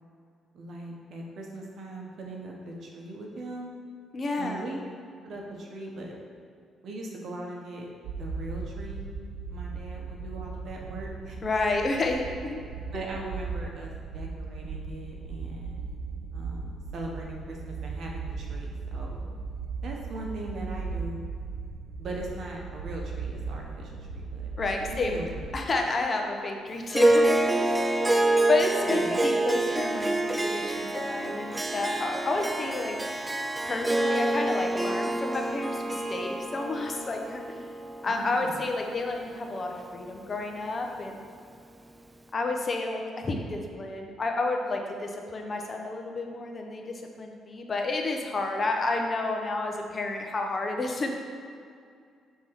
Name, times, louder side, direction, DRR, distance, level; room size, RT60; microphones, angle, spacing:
voice 1, 0.5-3.7 4.4-4.8 5.2-6.2 6.8-7.9 8.2-9.0 9.5-11.4 12.9-15.8 16.3-19.3 19.8-21.2 22.0-24.5 25.1-25.4 28.8-29.2 38.1-38.6, right 2 dB, 65° right, 0 dB, 1.1 m, -40 dB
voice 2, 4.1-4.7 11.4-12.6 24.6-25.3 25.5-28.1 28.5-33.0 33.6-37.6 38.0-41.2 42.3-51.1, left 3 dB, 35° left, 2 dB, 0.8 m, -30 dB
sound 1, 8.0-25.7, right 4 dB, 90° right, 0.5 m, -37 dB
Harp, 26.9-39.5, right 2 dB, 15° right, 0.4 m, -27 dB
6.9 x 3.7 x 4.7 m, 2.3 s
cardioid pair, 90°, 0 cm